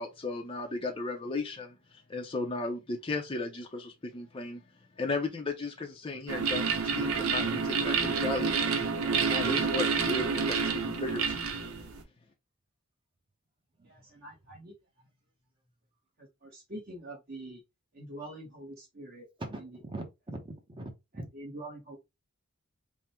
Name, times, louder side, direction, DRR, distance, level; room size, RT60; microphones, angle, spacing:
voice 1, 0.0-4.6 5.0-8.6 9.3-11.4, left 3 dB, 25° left, 0.5 m, -35 dB
sound 1, 6.3-12.0, right 5 dB, 90° right, 0.8 m, -29 dB
voice 2, 13.8-14.7 16.2-17.6 17.9-19.3 19.6-19.8 21.1-22.0, right 1 dB, 45° right, 1.0 m, -45 dB
voice 3, 19.4-21.3, right 1 dB, 25° right, 0.7 m, -41 dB
3.7 x 2.1 x 4.2 m
head